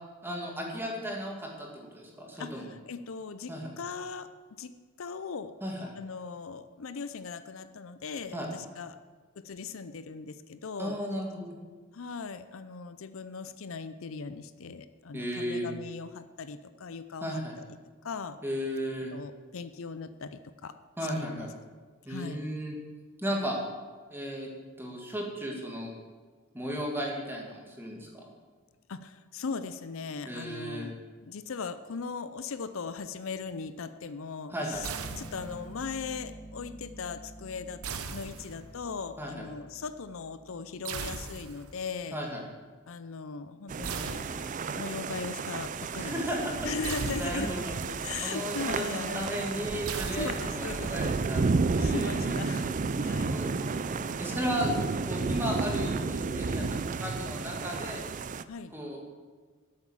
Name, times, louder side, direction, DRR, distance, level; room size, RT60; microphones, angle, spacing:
voice 1, 0.2-2.6 3.5-3.7 5.6-5.9 8.3-8.5 10.8-11.5 15.1-15.7 17.2-17.5 18.4-19.1 21.0-21.5 22.1-22.7 23.2-23.6 24.1-24.5 24.8-25.9 26.5-28.2 30.3-30.9 34.5-34.8 39.2-39.5 42.1-42.4 46.0-46.7 47.1-47.7 48.2-51.4 51.7-52.3 53.1-53.9 54.2-54.7 55.0-58.0 58.7-59.0, equal, 10° right, -1 dB, 2.1 m, -35 dB
voice 2, 2.4-4.3 4.6-5.5 6.0-9.0 9.4-11.0 11.9-17.7 18.0-18.4 19.1-20.8 21.1-21.5 22.1-22.5 28.9-34.9 35.2-37.8 38.1-42.2 42.9-44.2 44.8-46.2 46.6-47.5 47.8-49.5 49.9-51.2 51.8-53.4 56.5-56.7 58.5-58.7, left 5 dB, 65° left, 11 dB, 0.5 m, -39 dB
sound 1, 34.7-41.6, right 1 dB, 10° left, 1.1 m, -49 dB
sound 2, 34.8-35.8 37.8-38.9 40.8-41.8 43.8-44.8 46.8-47.8 49.9-50.9, right 5 dB, 85° right, 0.9 m, -39 dB
sound 3, 43.7-58.4, right 4 dB, 35° right, 0.4 m, -32 dB
12.0 x 7.9 x 7.3 m, 1.4 s
head